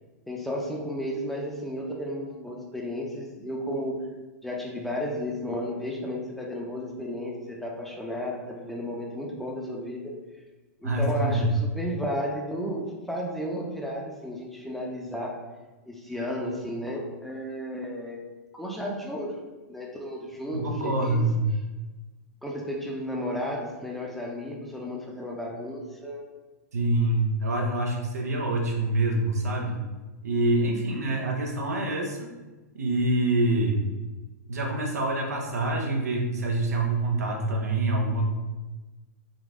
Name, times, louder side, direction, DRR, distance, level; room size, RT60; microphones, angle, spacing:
voice 1, 0.3-4.1 4.4-10.2 10.8-15.4 15.9-18.3 18.5-19.4 19.7-21.3 22.4-26.2, equal, ahead, -2 dB, 0.6 m, -33 dB
voice 2, 10.8-11.5 20.5-21.4 26.7-29.8 30.2-32.3 32.7-33.8 34.5-38.3, right 2 dB, 80° right, 0 dB, 0.8 m, -26 dB
3.8 x 2.5 x 3.7 m, 1.2 s
hypercardioid pair, 110°, 8 cm